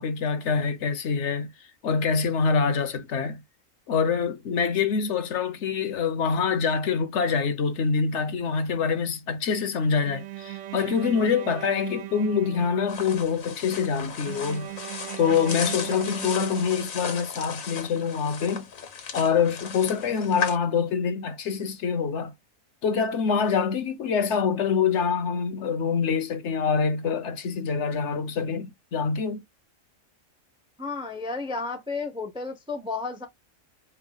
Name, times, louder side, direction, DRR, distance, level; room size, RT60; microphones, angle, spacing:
voice 1, 0.0-1.5 1.8-3.4 3.9-14.7 15.2-18.7 19.1-22.3 22.8-29.4, left 6 dB, 65° left, 1.0 m, -25 dB
Bowed string instrument, 10.0-13.2 14.2-17.2, right 15 dB, 70° right, 0.9 m, -39 dB
sound 1, 12.9-20.6, left 6 dB, 85° left, 1.6 m, -36 dB
voice 2, 30.8-33.3, left 3 dB, 5° right, 0.5 m, -32 dB
4.5 x 2.1 x 3.8 m
omnidirectional pair, 1.4 m